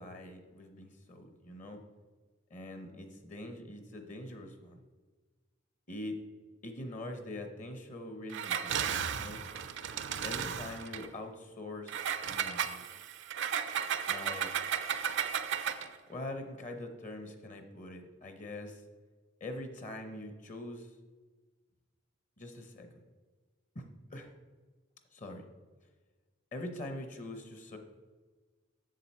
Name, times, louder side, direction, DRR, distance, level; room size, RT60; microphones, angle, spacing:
voice 1, 0.0-1.8 2.5-4.8 5.9-6.2 6.6-9.4 10.2-12.8 14.1-14.5 16.1-18.8 19.4-20.9 22.4-22.9 23.7-23.8 24.1-24.3 25.1-25.4 26.5-27.8, left 1 dB, 40° left, 6 dB, 0.8 m, -43 dB
Engine, 8.3-11.1 11.9-15.9, right 8 dB, 65° right, 0.5 m, -34 dB
7.6 x 6.9 x 4.3 m, 1.3 s
head